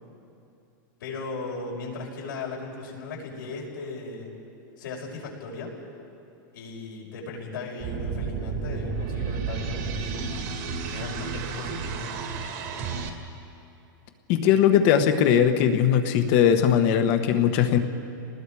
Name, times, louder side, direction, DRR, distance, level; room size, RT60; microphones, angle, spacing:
voice 1, 1.0-4.3 4.8-5.7 6.5-10.4 10.8-12.0, left 3 dB, 85° left, -2 dB, 5.6 m, -37 dB
sound 1, 7.8-13.1, right 5 dB, 50° right, 2.2 m, -32 dB
voice 2, 14.3-17.8, left 9 dB, 40° left, 8 dB, 1.3 m, -20 dB
29.0 x 20.0 x 4.9 m, 2.8 s
supercardioid pair, 160°, 11 cm